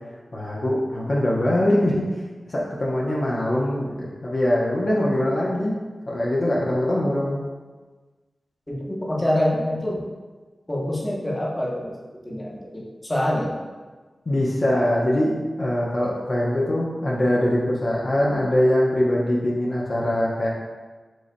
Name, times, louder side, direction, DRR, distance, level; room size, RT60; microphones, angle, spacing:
voice 1, 0.3-2.1 2.5-5.8 6.1-7.5 14.3-20.5, left 1 dB, 55° left, -5 dB, 0.8 m, -22 dB
voice 2, 8.7-10.0 10.7-11.9 12.2-13.5, left 1 dB, 25° left, -4 dB, 1.1 m, -25 dB
7.6 x 2.7 x 2.2 m, 1.3 s
cardioid pair, 55°, 0 cm